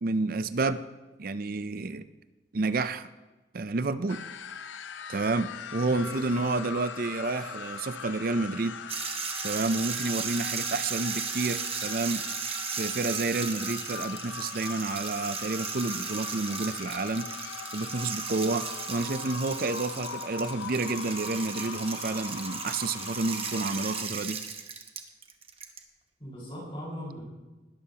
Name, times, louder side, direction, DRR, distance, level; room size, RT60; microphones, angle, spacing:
voice 1, 0.0-0.8 1.2-2.1 2.5-3.1 3.5-4.2 5.1-8.7 9.4-12.2 12.8-17.3 17.7-24.4, right 3 dB, 50° right, 12 dB, 0.5 m, -30 dB
sound 1, 4.1-24.0, left 6 dB, 80° left, 0.6 m, -40 dB
voice 2, 5.9-6.5 26.2-27.2, equal, 30° left, -5 dB, 5.2 m, -40 dB
sound 2, 8.9-25.8, right 6 dB, 30° right, 1.0 m, -36 dB
20.0 x 12.5 x 2.9 m, 1.1 s
head